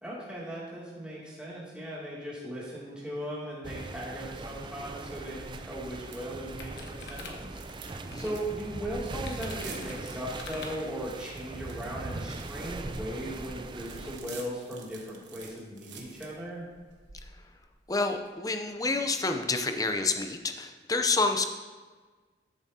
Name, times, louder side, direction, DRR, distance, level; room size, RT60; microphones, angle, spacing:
voice 1, 0.0-7.8 8.1-16.6, equal, 5° right, -8 dB, 2.5 m, -38 dB
sound 1, 3.6-14.2, right 2 dB, 25° right, 0.4 m, -40 dB
sound 2, 5.4-20.3, right 4 dB, 75° right, 1.2 m, -51 dB
sound 3, 5.9-8.4 9.2-10.7, left 4 dB, 60° left, 1.1 m, -45 dB
voice 2, 17.9-21.5, left 3 dB, 20° left, 6 dB, 0.6 m, -28 dB
13.0 x 7.1 x 2.8 m, 1.4 s
head